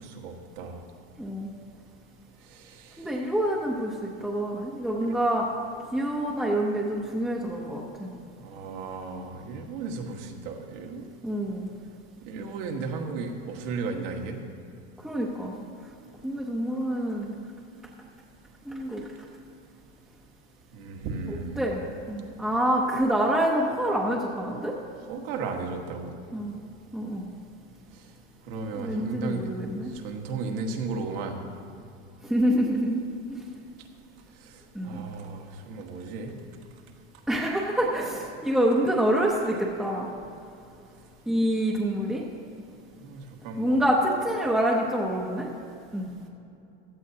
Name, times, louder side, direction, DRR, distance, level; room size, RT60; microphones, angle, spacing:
voice 1, 0.0-0.8 2.5-3.0 5.0-5.1 8.4-11.1 12.3-14.4 20.7-21.7 25.1-26.1 28.5-29.5 30.0-31.4 34.8-36.3 43.0-43.8, right 4 dB, 65° right, 3 dB, 1.7 m, -35 dB
voice 2, 1.2-1.5 3.0-5.5 5.9-8.1 11.2-11.7 15.0-15.5 16.2-17.3 18.7-19.0 21.3-24.7 26.3-26.5 26.9-27.2 28.7-29.9 32.2-33.0 33.3-33.4 34.7-35.0 37.3-40.1 41.3-42.2 43.6-45.5 45.9-46.1, right 1 dB, ahead, -3 dB, 0.8 m, -26 dB
16.0 x 12.5 x 2.8 m, 2.6 s
supercardioid pair, 150°, 30 cm